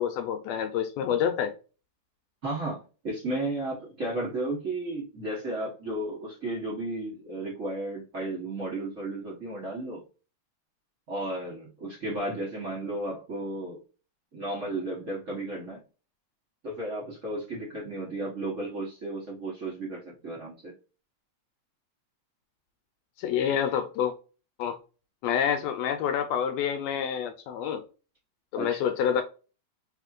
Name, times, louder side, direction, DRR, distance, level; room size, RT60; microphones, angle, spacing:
voice 1, 0.0-1.5 23.2-24.1 24.6-24.8 25.2-27.8 28.5-29.2, left 8 dB, 80° left, 1.6 m, -27 dB
voice 2, 2.4-10.0 11.1-13.8 14.3-15.8 16.6-20.7 28.6-28.8, right 2 dB, 75° right, 0.7 m, -34 dB
4.2 x 3.5 x 2.4 m
omnidirectional pair, 3.4 m